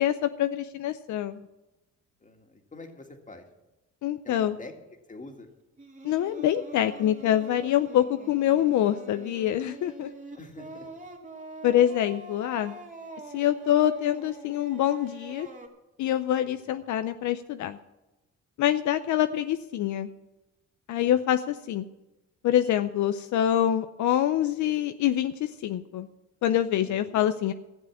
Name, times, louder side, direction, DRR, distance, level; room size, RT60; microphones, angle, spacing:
voice 1, 0.0-1.5 4.0-4.6 6.0-10.1 11.6-12.7 13.3-15.5 16.0-17.8 18.6-20.1 20.9-21.9 22.4-26.1 26.4-27.5, left 11 dB, 75° left, 10 dB, 0.6 m, -25 dB
voice 2, 2.2-3.4 4.2-4.7 5.1-5.5 10.4-10.9 16.4-16.5 21.0-21.1 26.8-27.2, left 2 dB, 25° left, 4 dB, 2.1 m, -45 dB
Singing, 5.8-15.7, right 3 dB, 25° right, 2.6 m, -45 dB
14.5 x 7.4 x 7.3 m, 1.0 s
cardioid pair, 90°, 30 cm